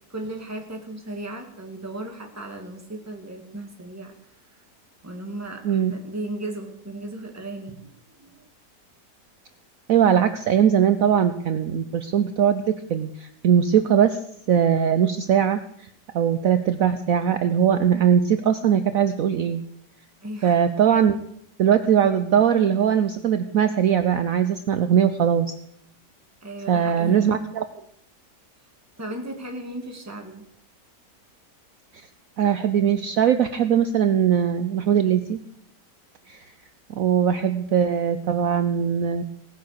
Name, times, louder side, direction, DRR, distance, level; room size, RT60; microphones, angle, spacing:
voice 1, 0.1-4.1 5.0-8.4 20.2-20.6 26.4-27.4 29.0-30.4, right 1 dB, 10° right, 3 dB, 2.1 m, -36 dB
voice 2, 9.9-14.2 14.5-15.9 16.1-19.6 20.4-21.2 21.6-25.5 26.7-27.6 32.4-35.4 36.3-36.4 36.9-39.2, right 8 dB, 60° right, 10 dB, 1.0 m, -20 dB
18.5 x 9.4 x 6.7 m, 0.70 s
omnidirectional pair, 1.8 m